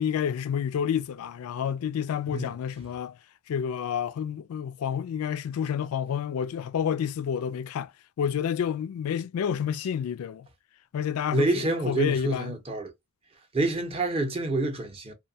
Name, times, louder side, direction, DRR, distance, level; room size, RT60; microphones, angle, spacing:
voice 1, 0.0-3.2 3.5-7.9 8.2-10.5 10.9-11.4 11.9-12.5, left 8 dB, 70° left, 0.3 m, -29 dB
voice 2, 11.3-12.9 13.5-15.1, right 2 dB, 25° right, 0.5 m, -27 dB
2.6 x 2.1 x 2.6 m
head